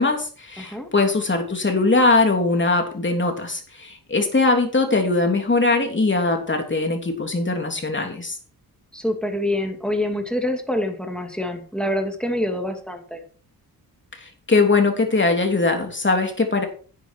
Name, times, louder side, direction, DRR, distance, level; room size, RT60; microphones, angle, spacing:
voice 1, 0.0-8.4 14.1-16.6, left 3 dB, 30° left, 4 dB, 3.2 m, -21 dB
voice 2, 0.6-0.9 8.9-13.2, left 1 dB, ahead, 4 dB, 2.5 m, -26 dB
10.0 x 9.6 x 4.6 m, 0.42 s
cardioid pair, 85°, 40 cm